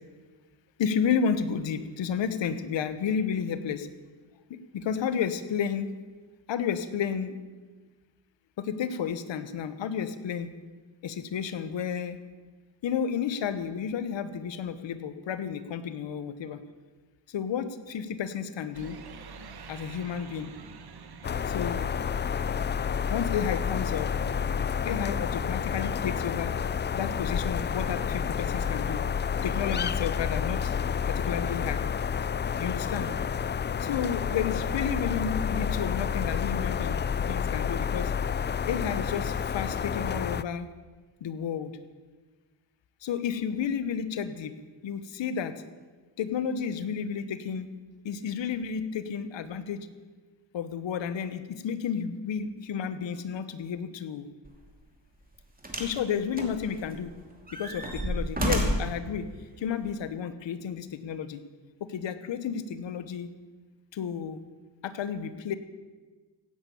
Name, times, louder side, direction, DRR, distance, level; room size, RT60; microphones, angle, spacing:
voice 1, 0.8-3.9 4.5-5.9 6.5-7.4 8.6-10.5 11.0-12.2 12.8-16.6 17.3-19.0 19.7-20.5 21.5-21.9 23.1-24.1 24.8-26.6 26.9-29.0 29.4-30.7 31.1-31.8 32.6-33.1 33.8-38.1 38.7-40.7 41.2-41.7 43.0-44.5 44.8-45.5 46.2-47.7 48.0-49.9 50.5-54.3 55.8-57.1 57.5-59.3 59.6-61.4 61.8-63.3 63.9-64.4 64.8-65.6, left 7 dB, 75° left, 12 dB, 1.2 m, -31 dB
sound 1, 18.7-26.1, right 4 dB, 55° right, 1.4 m, -47 dB
sound 2, 21.2-40.4, left 7 dB, 25° left, 0.3 m, -29 dB
sound 3, 54.5-54.6 55.6-56.0 56.4-57.1 57.5-59.0 59.9-60.0, right 1 dB, 20° right, 2.8 m, -30 dB
16.5 x 9.3 x 7.2 m, 1.3 s
cardioid pair, 90°, 45 cm